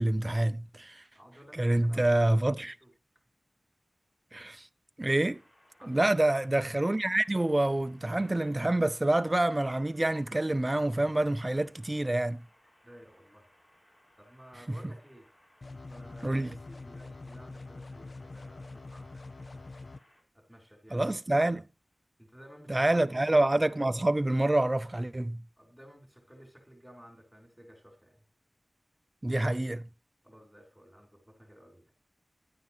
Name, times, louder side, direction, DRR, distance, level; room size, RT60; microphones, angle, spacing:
voice 1, 0.0-1.0 1.6-2.7 4.3-4.7 5.0-5.4 5.8-12.4 14.7-14.8 16.2-16.5 20.9-21.6 22.7-25.4 29.2-29.9, right 1 dB, 25° right, 0.5 m, -27 dB
voice 2, 1.1-2.9 5.8-6.2 12.8-13.5 14.2-15.3 15.9-19.8 20.3-21.6 22.2-23.3 25.6-28.3 30.2-31.9, equal, ahead, 3.7 m, -54 dB
sound 1, 5.2-20.2, equal, 40° left, 4.5 m, -64 dB
sound 2, 15.6-20.0, left 3 dB, 60° left, 0.4 m, -45 dB
10.5 x 9.2 x 3.2 m
wide cardioid pair, 75°, 0 cm